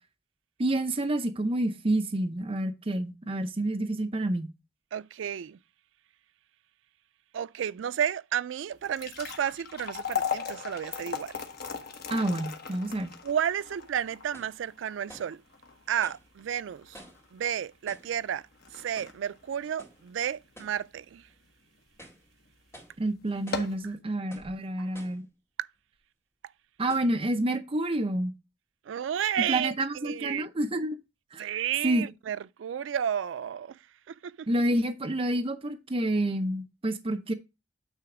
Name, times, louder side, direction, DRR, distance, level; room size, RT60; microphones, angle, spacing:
voice 1, 0.6-4.5 12.1-13.1 23.0-25.2 26.8-28.3 29.5-31.0 31.3-31.5 31.8-32.1 34.5-37.3, right 1 dB, 30° right, 0.6 m, -28 dB
voice 2, 4.9-5.6 7.3-11.4 13.2-15.4 15.9-17.0 17.3-18.5 18.7-21.3 24.8-24.9 25.6-25.7 28.9-29.7 30.0-30.5 31.4-33.8 34.1-34.5, right 9 dB, 75° right, 0.3 m, -32 dB
sound 1, 8.7-21.0 21.5-21.6 22.3-22.5 22.8-22.9 23.3-23.9, left 6 dB, 55° left, 1.2 m, -38 dB
sound 2, 14.3-14.6 15.1-15.4 16.0-16.3 16.9-17.3 17.9-18.2 19.0-19.2 19.8-20.0 20.5-20.8 21.3-21.4 21.9-22.3 22.7-23.0 23.5-23.7 24.3-24.6 24.9-25.3 26.0-26.1 26.9-27.2, equal, 15° left, 2.1 m, -50 dB
9.0 x 3.4 x 4.8 m
head